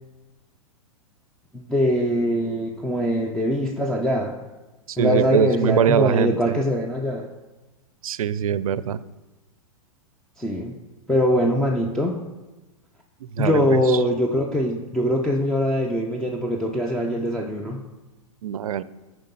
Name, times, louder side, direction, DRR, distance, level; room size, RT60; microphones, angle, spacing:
voice 1, 1.5-4.4 5.0-7.3 10.4-10.7 11.1-12.2 13.4-17.8, equal, 5° left, 0 dB, 0.6 m, -22 dB
voice 2, 4.9-6.6 8.0-9.0 13.2-14.0 18.4-18.8, right 8 dB, 80° right, 17 dB, 0.4 m, -23 dB
10.0 x 4.6 x 5.4 m, 1.1 s
hypercardioid pair, 110°, 18 cm